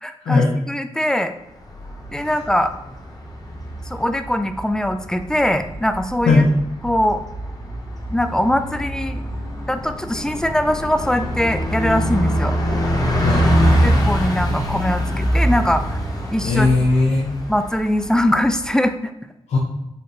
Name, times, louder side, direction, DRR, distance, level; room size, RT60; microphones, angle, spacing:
voice 1, 0.0-1.3 2.1-2.7 3.9-6.4 6.8-7.2 8.1-9.2 9.7-12.5 13.7-16.0 16.3-16.7 17.5-19.1, left 1 dB, 5° left, 9 dB, 0.3 m, -21 dB
Bus, 1.6-18.7, equal, 35° left, 1.0 m, -24 dB
voice 2, 13.2-13.5 16.4-17.3 19.5-19.6, left 3 dB, 80° left, -2 dB, 0.6 m, -17 dB
4.1 x 3.1 x 2.7 m, 0.89 s
cardioid pair, 55°, 12 cm